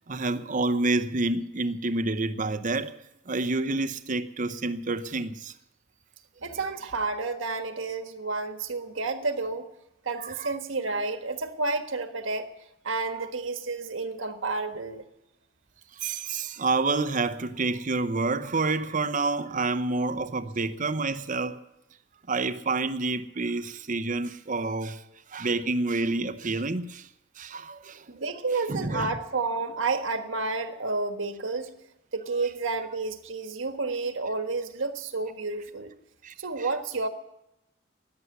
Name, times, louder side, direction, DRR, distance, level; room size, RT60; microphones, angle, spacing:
voice 1, 0.1-2.9 3.3-5.5 10.2-10.5 16.0-21.6 22.3-25.0 25.3-27.1 27.4-28.0 28.7-29.1 36.2-36.7, right 3 dB, 40° right, 0.8 m, -28 dB
voice 2, 6.4-9.7 10.0-12.5 12.8-15.0 28.1-31.7 32.1-35.9 36.4-37.1, right 3 dB, 85° right, 1.5 m, -30 dB
14.0 x 9.7 x 9.4 m
head